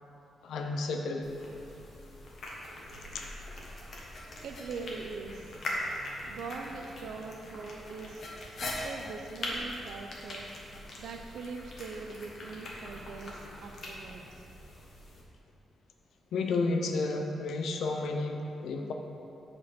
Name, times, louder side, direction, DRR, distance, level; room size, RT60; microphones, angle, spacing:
voice 1, 0.4-1.4 3.1-3.3 16.3-18.9, left 3 dB, 75° left, 4 dB, 0.7 m, -31 dB
sound 1, 1.2-15.2, left 1 dB, 50° left, 1.3 m, -41 dB
voice 2, 4.4-5.6 6.2-10.5 11.0-14.4, right 4 dB, 80° right, 3 dB, 0.5 m, -42 dB
7.3 x 4.5 x 5.9 m, 2.8 s
wide cardioid pair, 145°, 0 cm